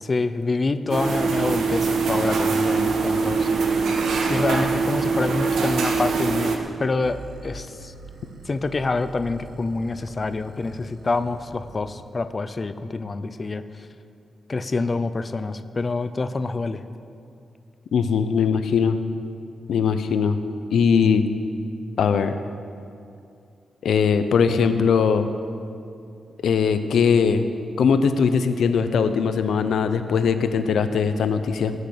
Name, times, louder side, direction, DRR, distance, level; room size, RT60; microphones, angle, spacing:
voice 1, 0.0-3.5 3.8-3.9 4.3-7.9 8.5-13.9 14.5-16.8, left 3 dB, 25° left, 11 dB, 0.5 m, -27 dB
sound 1, 0.9-6.6, right 4 dB, 90° right, 1.4 m, -23 dB
sound 2, 7.0-12.2, right 2 dB, 55° right, 1.3 m, -44 dB
voice 2, 17.9-19.0 19.7-20.4 20.7-21.2 22.0-22.3 23.8-25.3 26.4-27.5 27.8-31.7, left 6 dB, 75° left, 10 dB, 0.8 m, -20 dB
18.5 x 6.6 x 8.5 m, 2.5 s
wide cardioid pair, 170°, 0 cm